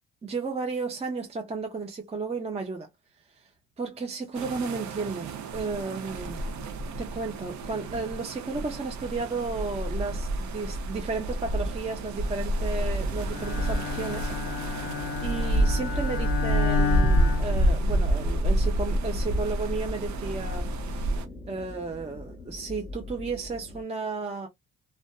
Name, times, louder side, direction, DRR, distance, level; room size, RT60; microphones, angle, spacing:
voice 1, 0.2-2.9 3.8-6.4 7.0-14.9 15.2-20.7 21.5-24.5, right 4 dB, 20° right, 0.5 m, -33 dB
sound 1, 4.3-21.3, right 1 dB, 65° right, 0.6 m, -28 dB
sound 2, 12.7-23.8, left 2 dB, 5° left, 1.0 m, -41 dB
Bowed string instrument, 13.3-18.3, left 7 dB, 50° left, 0.6 m, -32 dB
2.5 x 2.2 x 2.2 m
cardioid pair, 90°, 30 cm